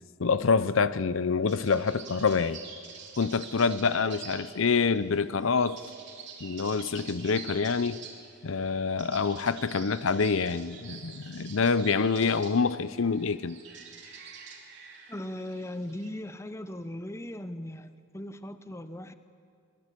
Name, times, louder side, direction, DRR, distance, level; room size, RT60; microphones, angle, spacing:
voice 1, 0.2-2.6 3.2-5.8 6.4-8.0 8.4-13.6, left 5 dB, 70° left, 0.6 m, -26 dB
sound 1, 1.4-16.1, right 6 dB, 55° right, 3.1 m, -47 dB
voice 2, 15.1-19.1, left 1 dB, 15° left, 0.8 m, -38 dB
23.0 x 21.0 x 8.3 m
head